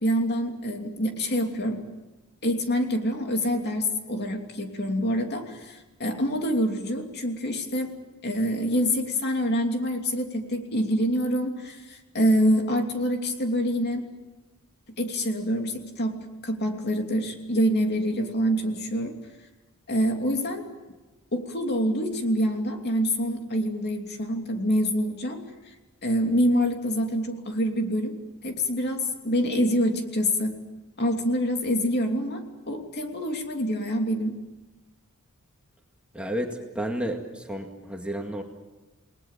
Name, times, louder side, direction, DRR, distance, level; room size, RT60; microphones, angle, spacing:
voice 1, 0.0-1.8 2.4-7.9 8.2-14.1 15.0-16.2 16.4-19.2 19.9-20.6 21.3-25.4 26.0-28.2 28.4-30.5 31.0-32.4 32.7-34.4, equal, 50° left, 3 dB, 2.9 m, -26 dB
voice 2, 36.1-38.4, right 1 dB, 5° right, 2 dB, 2.1 m, -31 dB
29.0 x 19.5 x 7.5 m, 1.1 s
head